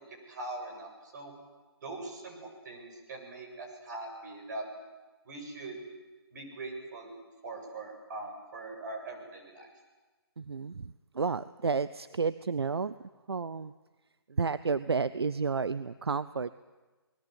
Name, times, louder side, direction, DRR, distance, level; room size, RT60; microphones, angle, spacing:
voice 1, 0.3-1.3 1.8-4.7 5.3-5.8 6.3-7.1 7.4-9.7, right 2 dB, 45° right, 2 dB, 7.3 m, -42 dB
voice 2, 10.4-12.9 13.3-13.7 14.3-16.6, right 5 dB, 75° right, 15 dB, 0.7 m, -31 dB
28.5 x 20.5 x 8.0 m, 1.2 s
figure-of-eight pair, 140°, 13 cm